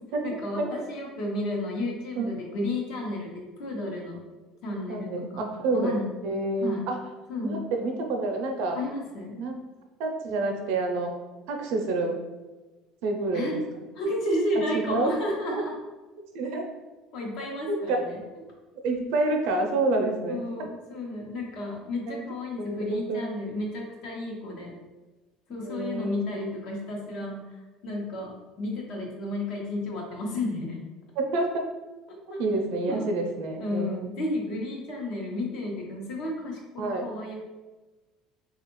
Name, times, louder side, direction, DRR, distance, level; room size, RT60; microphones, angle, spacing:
voice 1, 0.2-4.2 4.6-5.5 5.7-6.1 6.6-6.8 7.3-7.6 8.7-9.4 13.3-13.5 14.0-15.7 17.1-18.2 20.3-24.7 25.5-27.3 27.8-30.8 32.1-32.4 32.9-33.1 33.6-37.4, left 1 dB, 65° left, -1 dB, 0.9 m, -32 dB
voice 2, 4.7-7.0 7.4-8.8 9.4-9.5 10.0-11.1 11.5-12.1 13.0-13.6 14.7-15.1 16.3-16.6 17.7-18.0 18.8-20.5 22.1-22.2 22.6-23.3 25.6-26.2 27.2-27.4 31.2-31.6 32.4-34.1 36.8-37.1, right 2 dB, 75° right, 3 dB, 0.6 m, -28 dB
3.3 x 2.4 x 3.0 m, 1.2 s
cardioid pair, 140°, 0 cm